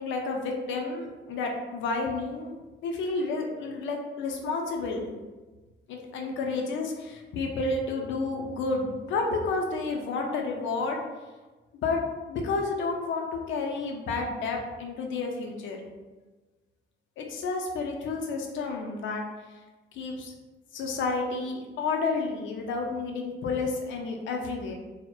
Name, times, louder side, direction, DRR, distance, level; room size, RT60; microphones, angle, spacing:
voice 1, 0.0-2.5 2.8-5.1 5.9-11.0 11.8-12.0 12.3-15.8 17.2-19.2 19.9-20.3 20.7-24.7, left 3 dB, 70° left, 1 dB, 0.5 m, -30 dB
2.7 x 2.0 x 2.2 m, 1.2 s
cardioid pair, 90°, 20 cm